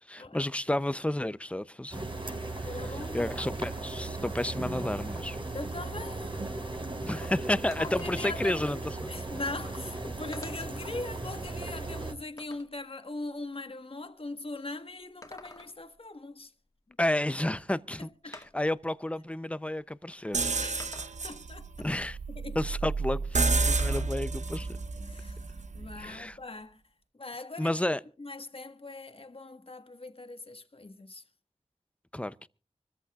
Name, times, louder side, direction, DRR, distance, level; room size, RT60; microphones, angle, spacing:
voice 1, 0.1-2.1 2.5-5.4 7.0-9.1 17.0-20.5 21.8-22.2 22.5-24.7 26.0-26.4 27.6-28.0 32.1-32.5, left 1 dB, 10° left, 0.6 m, -31 dB
sound 1, 1.9-12.1, right 2 dB, 40° right, 4.2 m, -37 dB
voice 2, 2.6-3.2 5.5-6.4 7.1-7.3 7.8-16.5 18.0-18.4 20.6-20.9 21.2-21.7 22.3-22.6 25.0-26.8 27.2-27.8 28.2-31.2, left 2 dB, 45° left, 1.5 m, -41 dB
sound 2, 7.7-8.5 9.5-9.6 10.3-10.8 11.4-12.8 15.0-16.0 17.5-17.6 18.3-18.8 19.8-19.9 20.8-21.4 23.8-24.3 24.6-25.7, left 2 dB, 25° left, 1.8 m, -49 dB
sound 3, 20.3-26.1, right 3 dB, 70° right, 0.9 m, -30 dB
25.5 x 14.0 x 2.4 m
wide cardioid pair, 55°, 13 cm